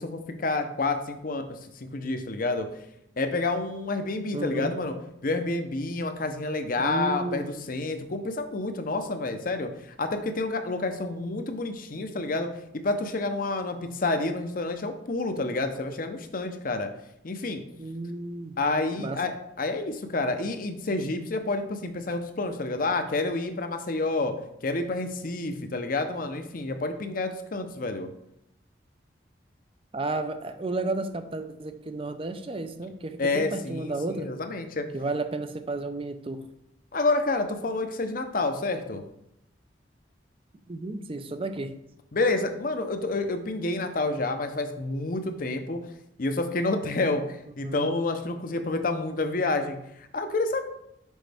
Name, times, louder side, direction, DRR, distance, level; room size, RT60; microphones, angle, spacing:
voice 1, 0.0-2.7 3.2-4.9 5.2-9.7 10.0-12.5 12.8-16.9 17.2-17.6 18.6-24.3 24.6-28.1 33.2-33.9 34.2-34.9 36.9-39.0 42.1-45.8 46.2-50.6, left 2 dB, 50° left, 7 dB, 0.7 m, -29 dB
voice 2, 4.3-4.7 6.8-7.5 17.8-18.6 18.9-19.2 29.9-34.3 34.9-36.5 40.7-41.7 47.6-47.9, right 2 dB, 30° right, 9 dB, 0.5 m, -32 dB
6.3 x 5.5 x 3.4 m, 0.78 s
head